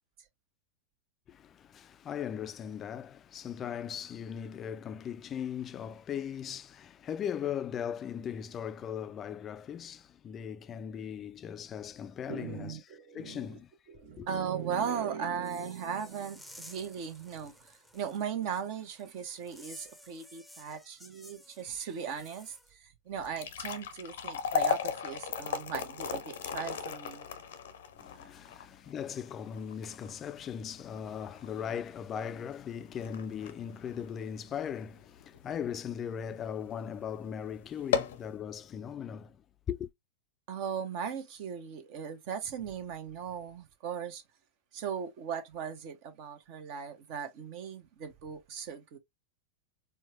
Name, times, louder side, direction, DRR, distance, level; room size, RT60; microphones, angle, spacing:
voice 1, 1.3-12.8 13.1-13.7 14.2-14.3 28.0-39.4 39.7-39.9, left 8 dB, 30° left, 0.4 m, -38 dB
voice 2, 12.3-13.6 13.9-27.3 40.5-44.2 44.7-49.0, right 7 dB, 50° right, 1.0 m, -38 dB
sound 1, 15.4-22.7, left 1 dB, ahead, 0.7 m, -54 dB
sound 2, 23.1-35.4 35.9-36.0 36.7-36.9 37.2-37.3 37.7-38.3, left 7 dB, 70° left, 0.6 m, -36 dB
4.4 x 2.3 x 2.8 m
figure-of-eight pair, 95°, 0 cm